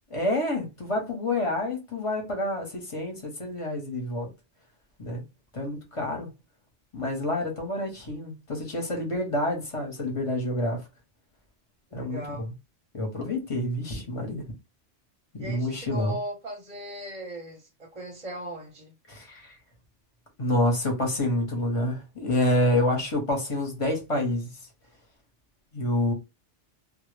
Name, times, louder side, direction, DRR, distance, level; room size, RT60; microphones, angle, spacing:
voice 1, 0.1-4.3 5.0-5.2 5.5-6.3 6.9-10.8 11.9-12.5 12.9-14.4 15.3-16.2 19.1-19.5 20.4-24.5 25.7-26.1, left 1 dB, 35° left, 0.7 m, -28 dB
voice 2, 11.9-12.5 15.4-18.9, equal, 40° right, 0.6 m, -38 dB
2.0 x 2.0 x 3.1 m
omnidirectional pair, 1.2 m